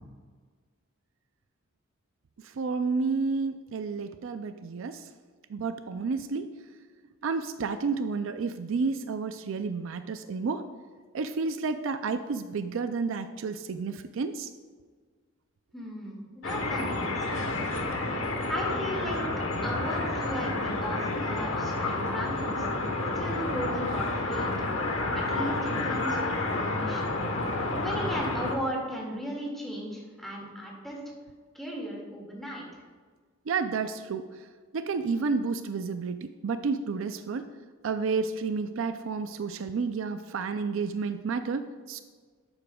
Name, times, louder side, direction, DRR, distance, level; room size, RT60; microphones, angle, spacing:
voice 1, 2.6-5.0 5.5-6.5 7.2-10.6 11.1-14.5 33.5-34.2 34.7-37.5 37.8-42.0, right 4 dB, 70° right, 10 dB, 0.4 m, -30 dB
voice 2, 15.7-17.9 18.5-19.3 19.6-22.7 23.1-24.5 25.1-27.2 27.8-31.0 31.5-32.7, equal, ahead, -3 dB, 2.1 m, -36 dB
sound 1, 16.4-28.5, left 2 dB, 70° left, 1.2 m, -30 dB
11.5 x 8.5 x 2.3 m, 1.5 s
head